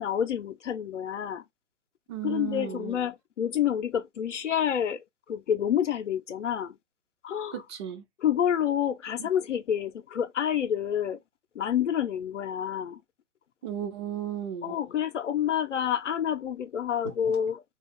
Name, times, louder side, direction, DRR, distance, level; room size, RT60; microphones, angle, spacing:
voice 1, 0.0-1.4 2.2-6.7 7.2-7.6 8.2-11.2 11.6-13.0 14.6-17.6, left 9 dB, 90° left, 0.6 m, -28 dB
voice 2, 2.1-3.0 7.5-8.0 9.2-9.3 13.6-14.8 17.0-17.1, right 10 dB, 25° right, 0.4 m, -35 dB
2.4 x 2.3 x 3.5 m
hypercardioid pair, 125°, 35 cm